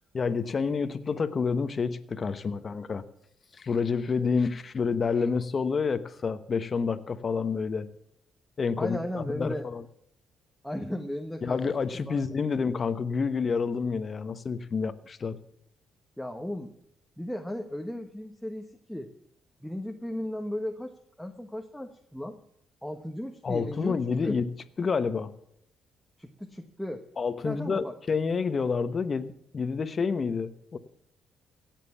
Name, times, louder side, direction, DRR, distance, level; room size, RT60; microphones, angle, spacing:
voice 1, 0.1-3.0 3.6-7.9 8.6-9.8 11.4-15.4 23.4-24.5 24.8-25.3 27.2-30.8, left 5 dB, 40° left, 12 dB, 1.1 m, -28 dB
voice 2, 8.8-9.7 10.6-11.6 12.1-12.2 16.2-16.7 17.2-19.1 19.6-22.4 22.8-24.0 24.2-24.4 26.2-27.0 27.4-27.9, left 1 dB, ahead, 3 dB, 1.2 m, -36 dB
17.0 x 7.6 x 7.1 m, 0.75 s
cardioid pair, 90°, 0 cm